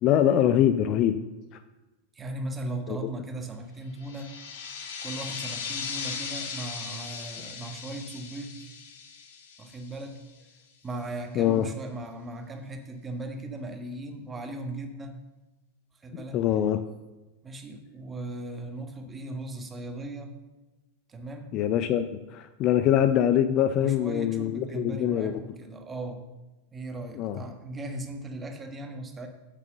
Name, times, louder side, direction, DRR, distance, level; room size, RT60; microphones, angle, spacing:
voice 1, 0.0-1.2 2.9-3.0 11.4-11.7 16.1-16.8 21.5-25.3 27.2-27.4, left 10 dB, 35° left, 10 dB, 0.5 m, -24 dB
voice 2, 2.1-4.3 5.0-8.7 9.6-10.5 10.8-15.2 16.0-16.5 17.4-20.3 21.1-21.6 23.8-26.2 26.7-29.3, right 2 dB, 15° right, 5 dB, 1.4 m, -38 dB
sound 1, 4.0-10.3, left 6 dB, 55° left, 1.5 m, -38 dB
8.4 x 6.5 x 6.8 m, 1.1 s
figure-of-eight pair, 90°, 0 cm